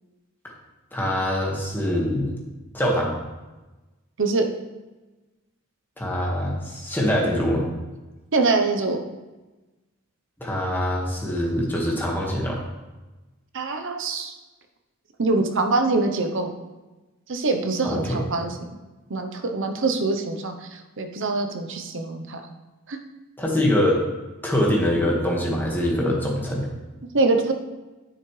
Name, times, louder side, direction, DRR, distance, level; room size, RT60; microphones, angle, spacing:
voice 1, 0.9-2.4 2.7-3.2 6.0-7.6 10.4-12.6 17.8-18.2 23.4-24.0 24.4-26.7, left 1 dB, 10° left, -3 dB, 1.7 m, -24 dB
voice 2, 8.3-9.0 13.5-14.3 15.2-16.5 17.3-18.5 19.1-20.5 21.0-22.4 22.9-23.0 27.1-27.5, right 3 dB, 60° right, 5 dB, 0.8 m, -23 dB
9.7 x 7.4 x 3.3 m, 1.1 s
head